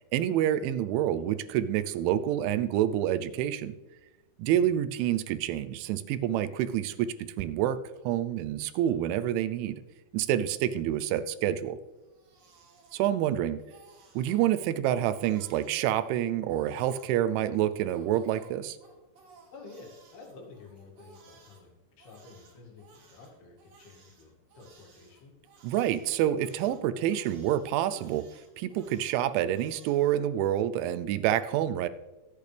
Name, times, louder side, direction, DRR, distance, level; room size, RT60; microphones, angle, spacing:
voice 1, 0.1-3.7 4.4-7.8 8.1-9.8 10.1-11.8 12.9-13.6 14.2-18.8 25.6-28.3 28.6-31.9, right 11 dB, 90° right, 13 dB, 3.1 m, -27 dB
Crying sobbing, 11.9-13.3 13.6-14.4 14.9-17.2 17.8-21.6 22.0-30.0, right 4 dB, 70° right, 4.8 m, -58 dB
voice 2, 19.5-25.3, left 3 dB, 60° left, -1 dB, 4.2 m, -51 dB
24.0 x 8.5 x 3.4 m, 1.1 s
omnidirectional pair, 5.3 m